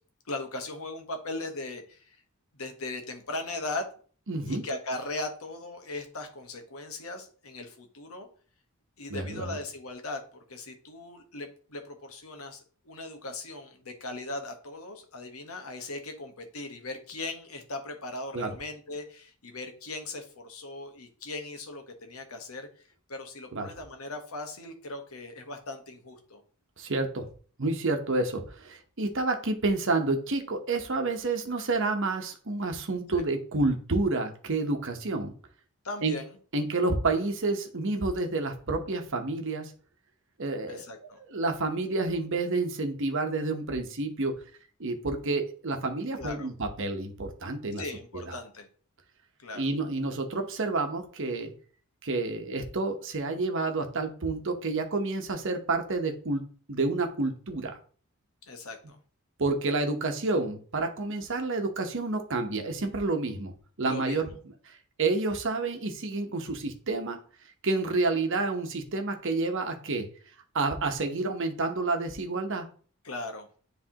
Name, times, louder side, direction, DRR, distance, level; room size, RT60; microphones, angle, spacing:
voice 1, 0.3-2.1 2.5-3.9 4.5-8.3 9.0-26.4 33.1-33.2 35.8-36.3 40.7-41.2 46.2-46.5 47.8-48.7 49.4-49.6 58.4-59.0 63.8-64.3 73.0-73.5, left 2 dB, 75° left, 5 dB, 1.2 m, -38 dB
voice 2, 4.3-4.6 9.1-9.6 18.3-18.5 23.5-23.7 26.8-27.3 27.6-35.3 36.0-36.1 36.5-39.7 40.4-44.4 44.8-47.8 48.1-48.3 49.5-51.5 52.0-56.4 56.7-57.8 59.4-63.5 63.8-64.3 64.6-64.7 65.0-67.2 67.6-70.1 70.5-72.7, right 3 dB, 60° right, 5 dB, 1.0 m, -29 dB
9.9 x 3.3 x 2.9 m, 0.42 s
head